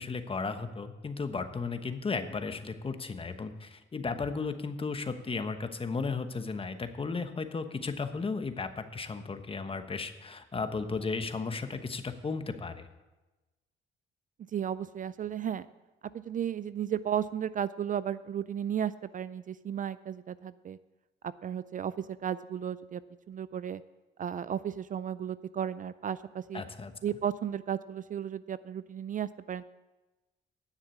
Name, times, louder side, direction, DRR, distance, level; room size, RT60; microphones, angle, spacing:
voice 1, 0.0-12.9 26.5-26.9, left 4 dB, 25° left, 8 dB, 1.1 m, -35 dB
voice 2, 14.5-15.7 16.1-20.8 21.2-23.0 23.3-23.8 24.2-26.6 27.0-29.6, right 9 dB, 40° right, 16 dB, 0.4 m, -34 dB
9.9 x 7.2 x 8.4 m, 1.1 s
cardioid pair, 90°, 20 cm